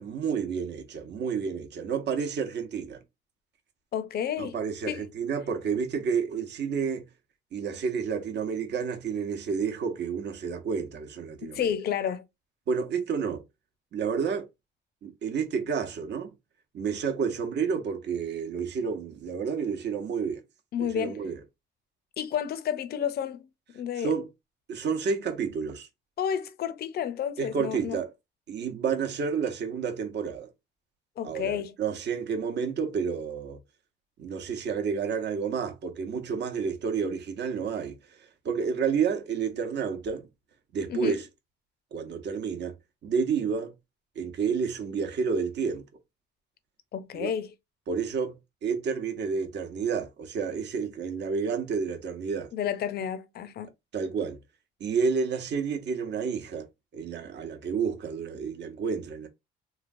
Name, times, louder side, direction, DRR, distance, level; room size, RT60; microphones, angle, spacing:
voice 1, 0.0-3.0 4.4-7.1 7.5-11.7 12.7-13.4 13.9-14.5 15.0-16.3 16.7-20.4 20.8-21.4 24.0-24.3 24.7-25.9 27.4-28.1 28.5-30.5 31.2-33.6 34.2-37.9 38.4-40.2 40.7-41.3 41.9-42.8 43.0-43.7 44.2-45.8 47.1-47.3 47.9-48.3 48.6-52.5 53.9-54.4 54.8-56.7 56.9-59.3, right 6 dB, 60° right, 0.8 m, -30 dB
voice 2, 3.9-4.5 4.9-5.1 11.4-12.3 20.7-21.3 22.2-23.5 23.7-24.1 26.2-28.0 31.2-31.8 40.9-41.2 46.9-47.5 52.5-53.7, left 9 dB, 55° left, 0.5 m, -31 dB
3.1 x 2.3 x 2.5 m
cardioid pair, 90°, 20 cm